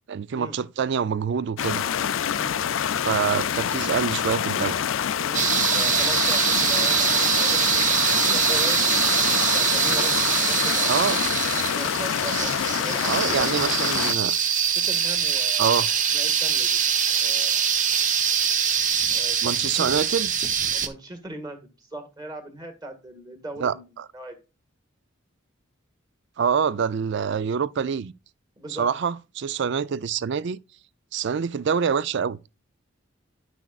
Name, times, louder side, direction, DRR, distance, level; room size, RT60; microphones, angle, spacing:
voice 1, 0.1-1.9 3.0-4.9 10.9-11.2 13.1-14.3 15.6-15.9 19.4-20.3 23.6-24.1 26.4-28.1 28.8-30.6 31.1-32.4, right 6 dB, 60° right, 0.4 m, -26 dB
sound 1, 1.6-14.1, left 8 dB, 75° left, 0.4 m, -26 dB
voice 2, 5.2-8.9 9.5-10.9 11.8-13.6 14.7-15.8 16.1-16.8 17.1-17.7 19.1-19.9 20.7-24.4 28.6-28.9, right 1 dB, 20° right, 1.7 m, -39 dB
sound 2, 5.3-20.9, right 8 dB, 40° right, 0.8 m, -23 dB
10.5 x 6.1 x 2.4 m
head